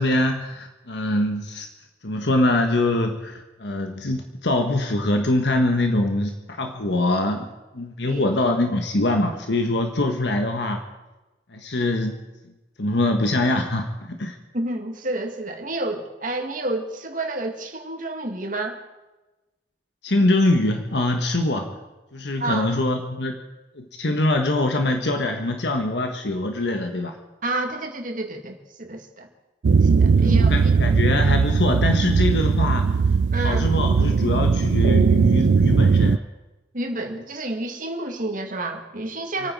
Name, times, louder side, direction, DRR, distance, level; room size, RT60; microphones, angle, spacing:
voice 1, 0.0-1.7 2.0-7.5 7.7-10.8 11.5-12.2 12.8-14.4 20.0-21.8 22.1-23.4 23.7-27.2 30.1-33.0 33.4-36.2 39.4-39.5, left 2 dB, 75° left, 4 dB, 1.4 m, -23 dB
voice 2, 14.5-18.8 22.4-22.7 27.4-29.3 29.8-30.7 33.3-33.7 36.7-39.5, right 2 dB, 50° right, 3 dB, 2.2 m, -29 dB
sound 1, 29.6-36.2, right 5 dB, 80° right, 0.4 m, -18 dB
28.0 x 9.4 x 4.7 m, 1.1 s
head